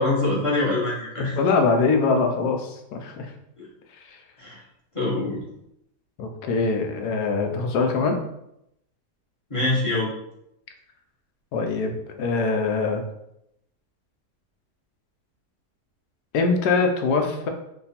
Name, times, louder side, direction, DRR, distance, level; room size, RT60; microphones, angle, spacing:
voice 1, 0.0-1.4 3.6-3.7 4.4-4.6 4.9-5.4 9.5-10.1, left 2 dB, 25° left, -8 dB, 1.0 m, -24 dB
voice 2, 1.4-3.3 4.0-4.2 6.2-8.2 11.5-13.0 16.3-17.5, left 4 dB, 75° left, 4 dB, 1.1 m, -23 dB
3.3 x 2.3 x 4.1 m, 0.81 s
omnidirectional pair, 1.7 m